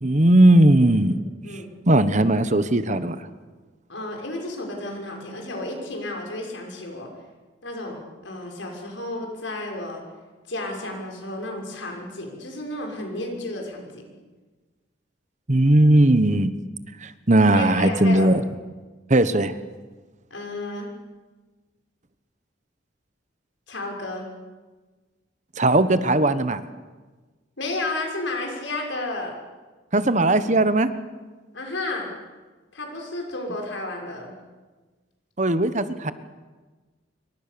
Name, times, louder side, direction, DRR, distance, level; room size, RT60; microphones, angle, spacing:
voice 1, 0.0-1.2 1.9-3.2 15.5-16.5 17.0-18.4 19.1-19.5 25.6-26.6 29.9-30.9 35.4-36.1, right 1 dB, 40° right, 12 dB, 1.2 m, -18 dB
voice 2, 3.9-7.1 7.6-10.0 10.5-14.1 17.5-18.3 20.3-20.9 23.7-24.3 27.6-29.4 31.5-32.1 32.7-34.3, left 2 dB, 80° left, 1 dB, 6.3 m, -32 dB
26.5 x 24.0 x 6.9 m, 1.3 s
head